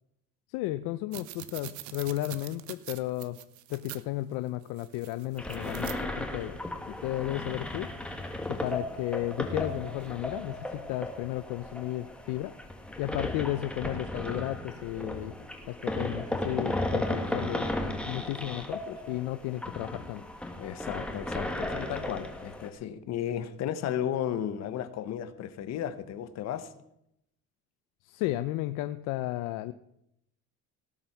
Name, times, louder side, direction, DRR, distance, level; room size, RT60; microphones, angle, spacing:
voice 1, 0.5-3.4 3.7-6.6 7.0-8.2 8.5-12.5 13.0-15.3 15.7-17.7 18.1-20.2 28.0-29.7, left 16 dB, 85° left, 12 dB, 0.6 m, -33 dB
sound 1, 1.1-4.0 4.6-6.0 8.4-8.7 10.0-10.1, right 14 dB, 70° right, 1.0 m, -44 dB
sound 2, 5.4-22.7, left 1 dB, 5° left, 1.7 m, -35 dB
voice 2, 20.6-26.7, left 10 dB, 60° left, 12 dB, 1.2 m, -34 dB
18.0 x 7.7 x 5.9 m, 0.79 s
cardioid pair, 145°, 31 cm